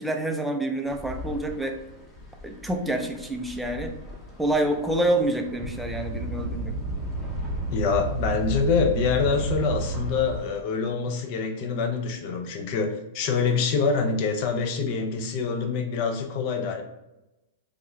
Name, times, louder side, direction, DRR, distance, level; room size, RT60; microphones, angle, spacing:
voice 1, 0.0-1.8 2.4-3.9 4.4-6.7, right 1 dB, 5° right, 3 dB, 0.4 m, -27 dB
sound 1, 0.8-10.6, left 2 dB, 15° left, 0.8 m, -43 dB
sound 2, 5.6-10.4, right 2 dB, 65° right, 0.9 m, -31 dB
voice 2, 7.7-16.8, left 5 dB, 50° left, 4 dB, 0.6 m, -25 dB
3.5 x 2.2 x 3.1 m, 0.97 s
hypercardioid pair, 120°, 0 cm